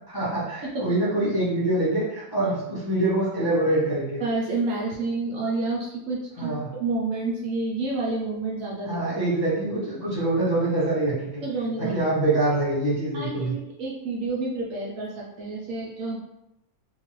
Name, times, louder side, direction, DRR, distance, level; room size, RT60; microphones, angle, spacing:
voice 1, 0.1-4.2 6.4-6.7 8.8-11.4 11.8-13.6, right 1 dB, 20° left, -10 dB, 0.7 m, -25 dB
voice 2, 4.2-9.0 11.4-12.0 13.1-16.2, right 3 dB, 70° right, -3 dB, 0.9 m, -29 dB
2.8 x 2.3 x 3.0 m, 0.89 s
omnidirectional pair, 1.6 m